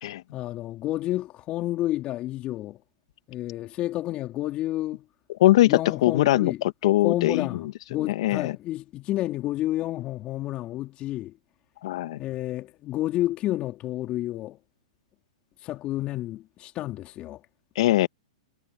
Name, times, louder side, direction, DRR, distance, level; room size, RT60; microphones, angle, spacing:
voice 1, 0.3-2.8 3.3-5.0 5.6-6.6 7.0-11.3 12.2-14.6 15.6-17.4, left 15 dB, 35° left, 4.0 m, -30 dB
voice 2, 5.4-6.5 6.8-7.5 8.1-8.5 11.8-12.2 17.7-18.1, left 15 dB, 60° left, 1.6 m, -21 dB
hypercardioid pair, 120°, 3 cm